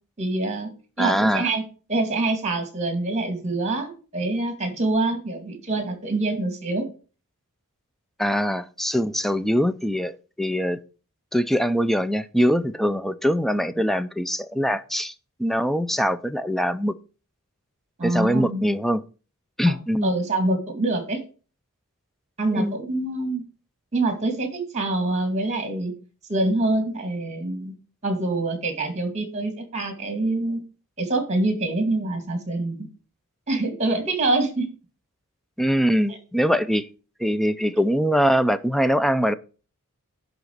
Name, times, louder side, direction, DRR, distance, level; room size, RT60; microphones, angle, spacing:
voice 1, 0.2-0.7 1.0-1.6 1.9-6.8 18.0-18.6 19.6-19.7 20.0-21.2 22.4-23.4 23.9-24.5 24.7-25.9 26.3-27.7 28.0-30.6 31.0-32.9 33.5-34.7 36.1-36.2, right 2 dB, 30° right, 2.5 m, -25 dB
voice 2, 1.0-1.5 8.2-10.8 11.3-15.1 15.4-16.9 18.0-19.0 19.6-20.1 22.5-22.8 35.6-36.9 37.2-39.3, equal, ahead, 0.4 m, -22 dB
11.0 x 4.0 x 6.6 m
head